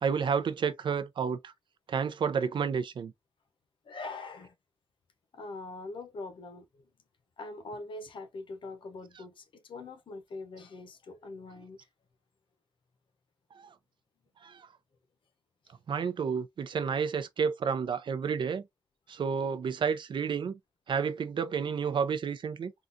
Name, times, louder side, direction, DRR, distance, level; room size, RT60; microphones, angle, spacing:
voice 1, 0.0-1.4 1.9-3.1 13.6-13.7 14.4-14.7 15.9-18.6 19.1-20.6 20.9-22.7, right 6 dB, 70° right, 0.4 m, -30 dB
voice 2, 3.8-4.5 5.3-6.9 7.4-11.9 15.6-15.7, left 3 dB, 85° left, 0.7 m, -43 dB
3.7 x 2.3 x 2.6 m
wide cardioid pair, 140°, 8 cm